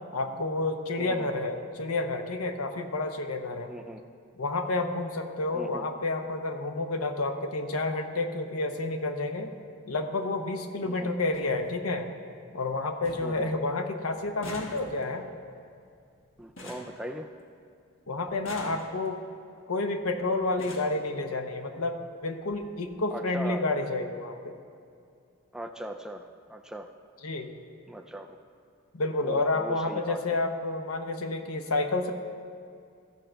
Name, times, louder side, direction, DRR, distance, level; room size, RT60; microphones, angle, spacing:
voice 1, 0.1-3.7 4.4-9.5 9.9-12.1 12.5-15.2 18.1-19.2 19.7-24.5 27.2-27.5 28.9-32.1, left 2 dB, 85° left, 6 dB, 0.8 m, -30 dB
voice 2, 1.0-1.3 3.7-4.0 5.5-5.8 10.8-11.1 13.2-13.5 16.4-17.3 23.1-23.6 25.5-26.9 27.9-28.4 29.2-30.4, right 1 dB, 5° right, 4 dB, 0.3 m, -39 dB
sound 1, 11.3-11.5 12.0-12.5 12.7-12.8 13.0-13.4 13.7-17.7 18.3-19.2 20.0-20.1 20.4-21.0 21.9-22.0 22.4-22.6 22.8-23.0, left 1 dB, 60° left, 1.4 m, -45 dB
15.0 x 6.4 x 4.5 m, 2.4 s
head